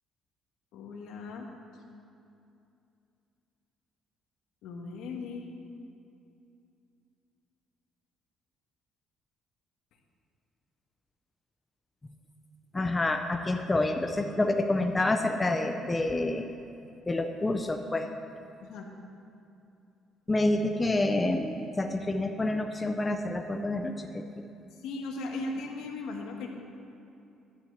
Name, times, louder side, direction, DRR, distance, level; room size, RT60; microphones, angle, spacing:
voice 1, 0.7-1.5 4.6-5.4 18.6-18.9 24.8-26.5, left 3 dB, 75° left, 1 dB, 1.5 m, -37 dB
voice 2, 12.7-16.5 17.1-18.1 20.3-24.4, left 2 dB, 10° left, 5 dB, 0.4 m, -28 dB
11.0 x 6.1 x 8.0 m, 2.6 s
cardioid pair, 180°, 0 cm